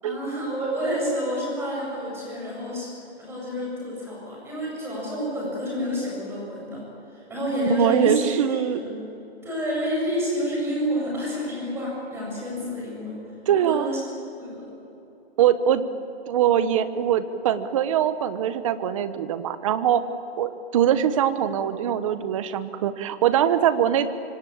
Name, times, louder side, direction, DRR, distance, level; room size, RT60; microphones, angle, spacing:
voice 1, 0.0-2.9 3.2-6.8 7.1-8.9 9.4-13.2 13.5-14.7, equal, 5° right, -4 dB, 7.4 m, -29 dB
voice 2, 7.8-8.8 13.5-13.9 15.4-15.8 16.3-20.0 20.4-24.1, right 10 dB, 30° right, 12 dB, 1.2 m, -22 dB
25.5 x 24.5 x 8.6 m, 2.8 s
hypercardioid pair, 165°, 33 cm